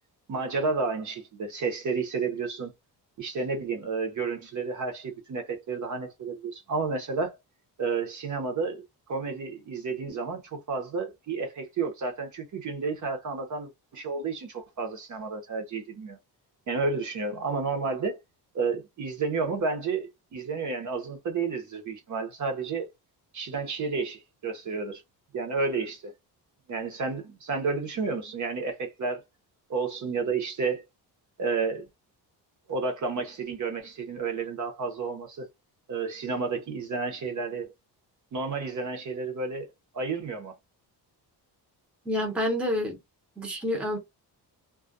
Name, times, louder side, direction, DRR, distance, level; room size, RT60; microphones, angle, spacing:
voice 1, 0.3-2.7 3.2-7.4 7.8-16.2 16.7-18.2 18.5-22.9 23.3-25.0 25.3-26.1 26.7-29.2 29.7-30.9 31.4-31.8 32.7-35.5 35.9-37.7 38.3-39.7 39.9-40.5, right 4 dB, 45° right, 0.8 m, -31 dB
voice 2, 42.0-43.0 43.4-44.0, left 1 dB, 5° right, 0.7 m, -28 dB
2.3 x 2.1 x 2.6 m
cardioid pair, 135°, 40 cm